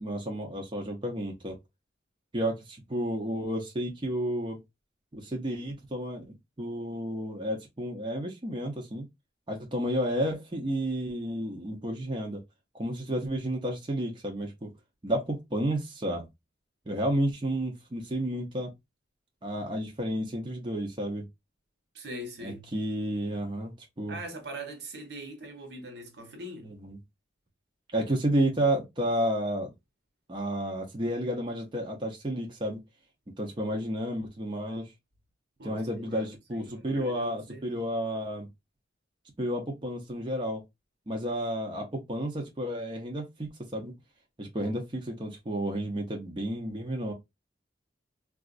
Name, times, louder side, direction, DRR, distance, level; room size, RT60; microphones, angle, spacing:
voice 1, 0.0-1.5 2.3-4.6 5.1-9.1 9.5-12.4 12.7-14.7 15.0-16.2 16.9-18.7 19.4-21.3 22.4-24.2 26.6-27.0 27.9-29.7 30.3-32.8 33.4-34.9 35.6-38.5 39.4-40.6 41.1-43.9 44.4-47.1, right 1 dB, 25° right, 0.6 m, -31 dB
voice 2, 21.9-22.7 24.1-26.8 35.6-37.8, right 1 dB, 60° right, 0.9 m, -42 dB
3.9 x 2.4 x 2.4 m
head